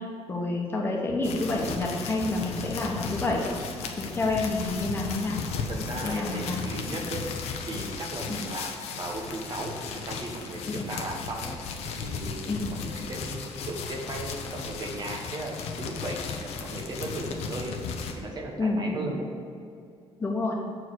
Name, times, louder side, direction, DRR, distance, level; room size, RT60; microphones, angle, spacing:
voice 1, 0.0-3.5 4.0-5.4 6.0-6.6 8.3-8.4 10.7-10.8 12.5-12.8 18.6-19.1 20.2-20.5, left 2 dB, 20° left, -2 dB, 1.2 m, -29 dB
sound 1, 1.2-18.1, left 5 dB, 90° left, 0.9 m, -35 dB
voice 2, 5.7-7.3 7.7-10.6 10.9-11.6 12.0-17.8 18.1-19.4, right 2 dB, 40° right, 1 dB, 1.1 m, -36 dB
7.5 x 4.7 x 6.4 m, 2.5 s
cardioid pair, 135°, 11 cm